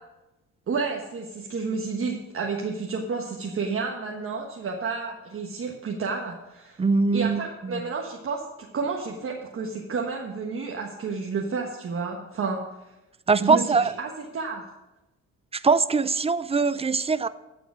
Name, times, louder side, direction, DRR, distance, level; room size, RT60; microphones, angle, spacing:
voice 1, 0.7-6.8 7.1-8.4 8.7-12.6 13.4-14.6, right 4 dB, 45° right, 0 dB, 1.4 m, -30 dB
voice 2, 6.8-7.8 13.3-13.9 15.5-17.3, right 4 dB, 20° right, 15 dB, 0.4 m, -22 dB
15.0 x 5.1 x 6.1 m, 0.99 s
cardioid pair, 90°, 30 cm